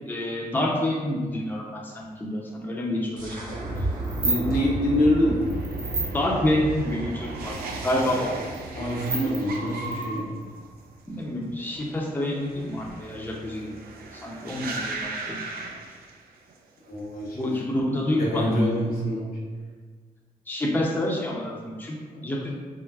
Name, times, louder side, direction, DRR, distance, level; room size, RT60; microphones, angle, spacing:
voice 1, 0.1-2.0 2.3-3.4 6.1-7.5 7.8-8.3 11.1-13.8 14.2-15.4 17.3-18.6 20.5-22.0 22.2-22.5, left 1 dB, 10° left, -4 dB, 0.6 m, -27 dB
sound 1, 3.2-8.7, right 2 dB, 55° right, 1.1 m, -33 dB
sound 2, 3.5-16.6 16.9-17.4, right 3 dB, 80° right, 0.4 m, -38 dB
sound 3, 3.7-4.4 5.5-6.1 7.2-7.3 7.6-7.7 8.5-8.6 8.9-10.4, right 2 dB, 40° right, 0.7 m, -29 dB
voice 2, 4.2-5.4 8.7-10.3 16.9-17.4 18.1-19.3 22.1-22.2, left 1 dB, 70° left, -4 dB, 0.9 m, -25 dB
4.5 x 2.0 x 2.4 m, 1.5 s
cardioid pair, 70°, 16 cm